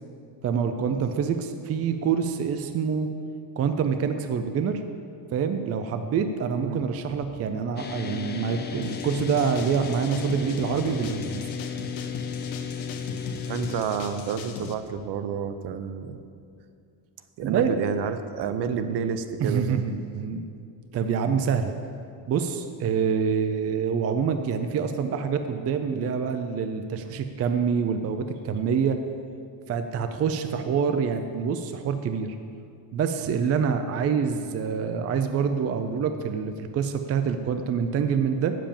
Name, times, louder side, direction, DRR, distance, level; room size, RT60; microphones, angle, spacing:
voice 1, 0.4-3.1 3.6-4.8 5.3-11.5 17.4-17.7 19.4-20.4 20.9-21.7 22.3-29.0 29.7-32.4 32.9-38.6, right 6 dB, 35° right, 7 dB, 0.5 m, -26 dB
sound 1, 7.8-13.8, left 6 dB, 25° left, 0.5 m, -34 dB
sound 2, 8.8-14.7, left 6 dB, 90° left, 1.0 m, -39 dB
voice 2, 13.5-16.2 17.4-19.8, right 7 dB, 65° right, 9 dB, 0.8 m, -30 dB
8.8 x 7.6 x 7.0 m, 2.4 s
cardioid pair, 150°, 44 cm